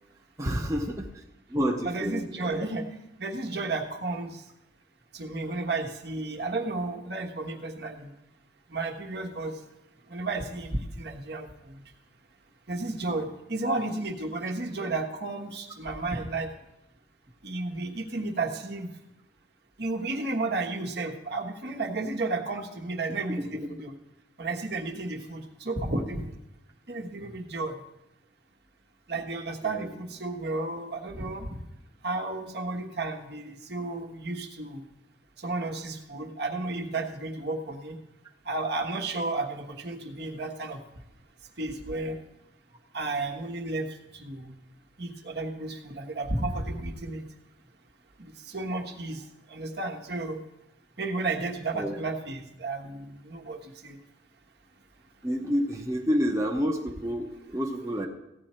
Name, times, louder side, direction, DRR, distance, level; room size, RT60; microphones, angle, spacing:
voice 1, 0.4-0.9 1.1-1.2 1.5-2.7 23.4-23.5 29.6-29.9 51.7-52.0 55.2-58.1, equal, 15° right, 0 dB, 0.9 m, -29 dB
voice 2, 1.8-2.8 3.2-4.4 5.1-8.1 8.7-9.5 10.1-11.8 12.7-16.5 17.4-18.9 19.8-24.0 24.4-26.3 26.9-27.8 29.1-31.5 32.0-34.8 35.4-38.0 38.4-40.8 41.6-42.2 42.9-44.5 45.0-47.3 48.2-50.4 51.0-54.0, right 2 dB, 55° right, 2 dB, 1.3 m, -32 dB
15.0 x 9.4 x 4.4 m, 0.89 s
head